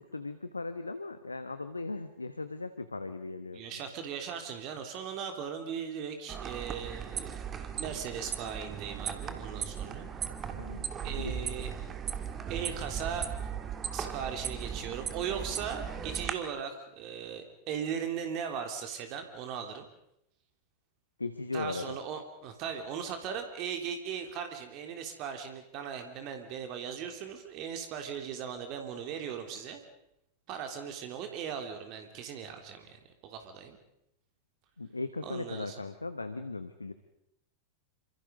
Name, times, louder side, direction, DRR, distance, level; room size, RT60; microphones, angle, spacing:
voice 1, 0.0-3.6 10.5-10.9 11.2-11.5 21.2-22.0 34.8-36.9, left 3 dB, 80° left, 11 dB, 1.3 m, -38 dB
voice 2, 3.5-7.4 7.8-10.1 11.0-11.8 12.5-13.5 13.9-19.9 21.5-29.8 30.5-33.8 35.2-35.8, right 7 dB, 40° right, 6 dB, 3.3 m, -38 dB
sound 1, 6.3-16.3, right 7 dB, 25° right, 2.2 m, -37 dB
28.0 x 26.5 x 5.2 m, 0.79 s
figure-of-eight pair, 90°, 0 cm